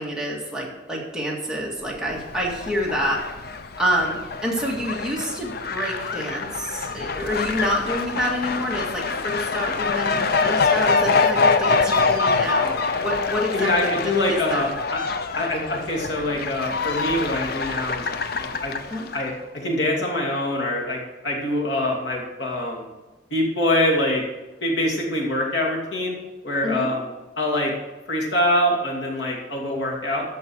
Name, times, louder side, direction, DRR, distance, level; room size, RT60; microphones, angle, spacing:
voice 1, 0.0-3.2 3.8-14.6 18.9-19.0 26.6-26.9, equal, 5° right, -3 dB, 2.0 m, -28 dB
Fowl, 2.0-19.3, left 4 dB, 60° left, 0.7 m, -25 dB
voice 2, 13.5-15.0 15.3-18.7 19.1-22.9 23.3-24.2 24.6-26.2 26.4-27.0 27.4-27.7 28.1-30.2, left 1 dB, 85° left, -2 dB, 2.6 m, -24 dB
13.5 x 5.3 x 6.2 m, 1.1 s
head